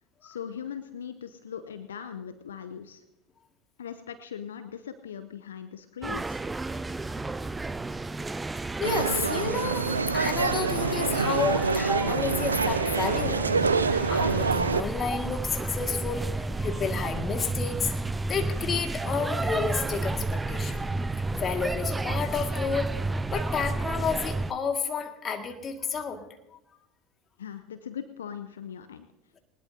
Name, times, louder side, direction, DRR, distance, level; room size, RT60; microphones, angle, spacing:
voice 1, 0.2-3.0 3.8-6.4 27.4-29.1, left 8 dB, 75° left, 11 dB, 0.7 m, -40 dB
sound 1, 6.0-24.5, right 2 dB, 15° right, 0.5 m, -31 dB
voice 2, 8.8-18.0 18.3-20.8 21.4-23.0 23.3-26.3, left 5 dB, 30° left, 5 dB, 2.0 m, -31 dB
sound 2, 8.8-14.8, right 4 dB, 85° right, 0.4 m, -26 dB
20.5 x 19.5 x 2.8 m, 0.89 s
figure-of-eight pair, 70°, 0 cm